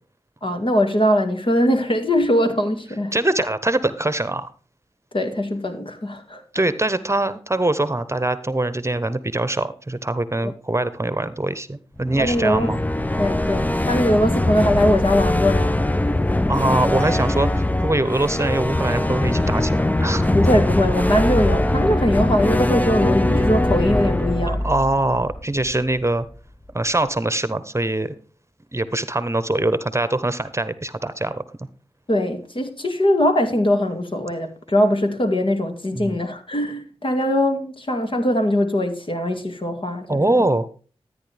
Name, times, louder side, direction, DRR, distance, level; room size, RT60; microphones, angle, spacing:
voice 1, 0.4-3.2 5.1-6.4 12.2-12.7 13.2-15.8 20.3-24.6 32.1-40.3, left 1 dB, 50° left, 2.2 m, -21 dB
voice 2, 3.1-4.5 6.5-12.8 16.5-20.2 24.5-26.2 26.7-28.1 28.7-31.4 35.9-36.2 40.1-40.7, right 2 dB, 25° right, 1.0 m, -23 dB
sound 1, 12.0-26.0, left 1 dB, 15° left, 0.6 m, -21 dB
13.0 x 9.7 x 3.4 m
cardioid pair, 40°, 11 cm